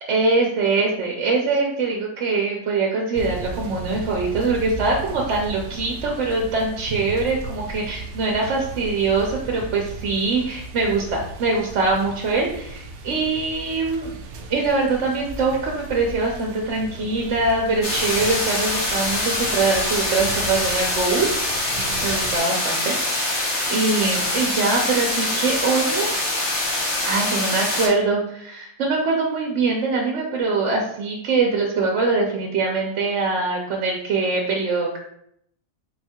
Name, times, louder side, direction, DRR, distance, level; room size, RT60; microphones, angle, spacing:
voice 1, 0.1-14.1 14.5-21.3 21.8-26.1 27.0-35.0, right 3 dB, 80° right, 0 dB, 1.0 m, -23 dB
sound 1, 3.1-22.4, right 2 dB, 65° right, 0.7 m, -36 dB
sound 2, 17.8-27.9, left 1 dB, 75° left, 1.3 m, -24 dB
4.0 x 2.3 x 4.3 m, 0.71 s
omnidirectional pair, 1.2 m